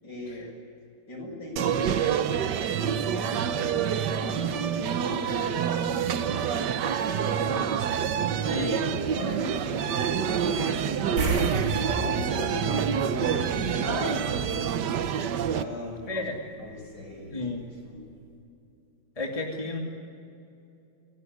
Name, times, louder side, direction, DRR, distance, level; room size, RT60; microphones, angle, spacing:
voice 1, 0.0-0.5 1.1-7.7 8.5-14.8 15.3-16.2 16.6-18.1, left 1 dB, 55° left, 1 dB, 7.4 m, -38 dB
sound 1, 1.6-15.6, right 8 dB, 60° right, 1.4 m, -27 dB
sound 2, 11.2-14.0 14.3-14.4 17.3-17.4 17.8-17.9, right 2 dB, 80° right, 4.3 m, -31 dB
voice 2, 19.2-19.8, left 3 dB, 15° left, -1 dB, 2.6 m, -32 dB
28.5 x 19.0 x 9.6 m, 2.7 s
omnidirectional pair, 2.4 m